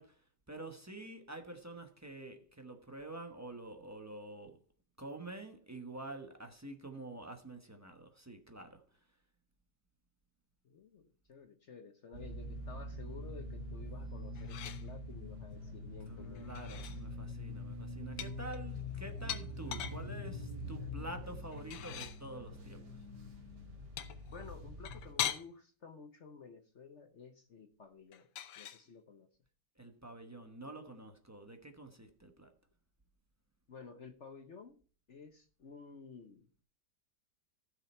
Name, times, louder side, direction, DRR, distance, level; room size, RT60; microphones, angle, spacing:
voice 1, 0.0-4.6 5.0-8.8 16.1-22.8 29.8-32.5, right 2 dB, 15° right, 0.6 m, -48 dB
voice 2, 10.6-16.6 24.3-28.3 28.6-29.3 33.7-34.8 35.1-36.6, left 5 dB, 50° left, 0.9 m, -53 dB
sound 1, 12.1-25.1, left 1 dB, 60° right, 2.5 m, -44 dB
sound 2, 14.3-14.9 16.3-17.0 18.2-20.0 21.5-22.2 24.0-25.4 28.1-28.8, left 10 dB, 85° left, 1.6 m, -41 dB
15.0 x 6.4 x 4.3 m
omnidirectional pair, 2.1 m